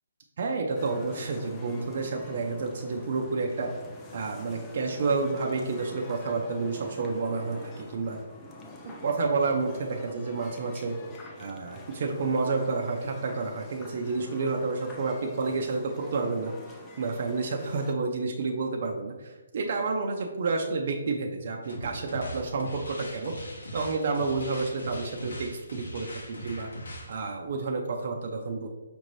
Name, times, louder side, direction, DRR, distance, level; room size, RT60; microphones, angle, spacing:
voice 1, 0.4-3.7 4.1-8.2 8.9-11.0 11.4-16.5 17.0-23.3 23.7-26.1 26.4-26.7 27.1-28.7, right 3 dB, 50° right, 1 dB, 0.4 m, -30 dB
sound 1, 0.7-17.9, left 1 dB, 15° left, 0.4 m, -47 dB
sound 2, 21.6-27.2, equal, 85° left, 1.0 m, -41 dB
5.1 x 2.6 x 3.1 m, 1.2 s
hypercardioid pair, 160°, 0 cm